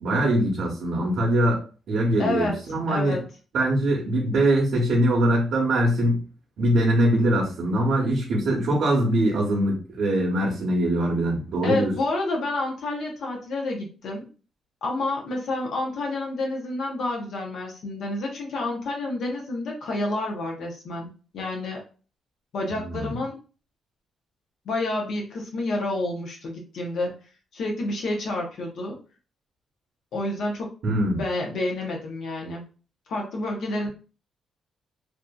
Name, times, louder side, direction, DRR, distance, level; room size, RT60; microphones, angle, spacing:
voice 1, 0.0-1.6 1.9-3.2 3.5-6.2 6.6-11.9 22.7-23.1 30.8-31.2, right 1 dB, 60° right, -3 dB, 0.7 m, -22 dB
voice 2, 2.2-2.6 2.9-3.2 11.6-14.3 14.8-21.1 21.3-21.8 22.5-23.4 24.7-27.1 27.5-29.0 30.1-30.7 31.1-32.6 33.1-33.9, left 2 dB, 65° left, 0 dB, 0.6 m, -29 dB
2.6 x 2.4 x 2.2 m, 0.36 s
cardioid pair, 145°, 0 cm